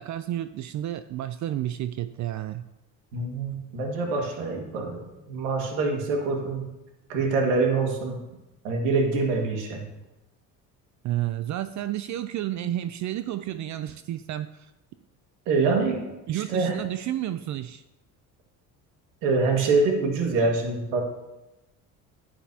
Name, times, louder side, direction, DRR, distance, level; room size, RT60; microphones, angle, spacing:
voice 1, 0.0-2.6 11.0-14.7 16.3-17.8, right 12 dB, 50° right, 12 dB, 0.5 m, -31 dB
voice 2, 3.1-6.7 7.1-8.2 8.6-9.8 15.5-16.0 16.3-16.7 19.2-21.0, right 3 dB, 90° right, 1 dB, 1.9 m, -25 dB
9.8 x 9.8 x 2.8 m, 0.97 s
supercardioid pair, 90°, 38 cm